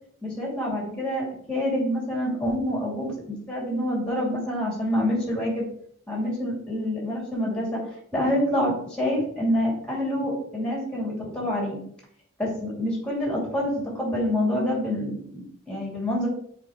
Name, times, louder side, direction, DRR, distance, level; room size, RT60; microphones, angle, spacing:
voice 1, 0.2-5.7 6.1-7.8 8.1-11.8 12.4-16.3, left 1 dB, 5° left, -4 dB, 2.4 m, -27 dB
8.3 x 4.2 x 3.0 m, 0.65 s
head